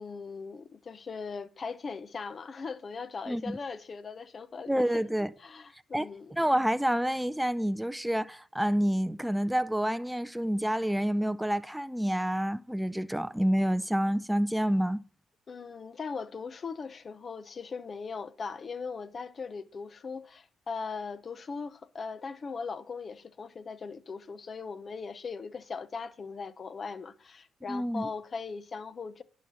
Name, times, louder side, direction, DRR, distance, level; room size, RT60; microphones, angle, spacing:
voice 1, 0.0-5.0 5.4-6.3 15.5-29.2, left 5 dB, 45° left, 0.9 m, -39 dB
voice 2, 3.3-3.6 4.7-5.3 5.9-15.0 27.7-28.1, equal, 5° right, 0.5 m, -28 dB
11.0 x 4.2 x 6.3 m
supercardioid pair, 70°, 0 cm